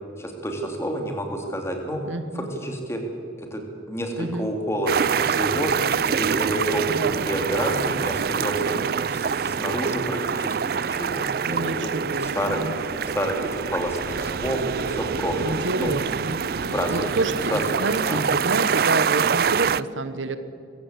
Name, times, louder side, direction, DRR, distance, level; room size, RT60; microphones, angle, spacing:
voice 1, 0.2-2.1 2.3-3.0 3.4-3.6 3.9-5.7 6.0-11.9 12.2-12.6 13.1-15.9 16.5-17.2 17.5-17.6 18.1-18.3, right 1 dB, 15° left, 3 dB, 3.0 m, -29 dB
voice 2, 2.0-2.5 4.2-4.5 6.9-7.3 11.5-12.7 15.3-20.4, right 2 dB, 90° right, 11 dB, 1.3 m, -29 dB
sound 1, 4.9-19.8, right 6 dB, 50° right, 0.4 m, -25 dB
23.5 x 15.5 x 8.3 m, 2.5 s
head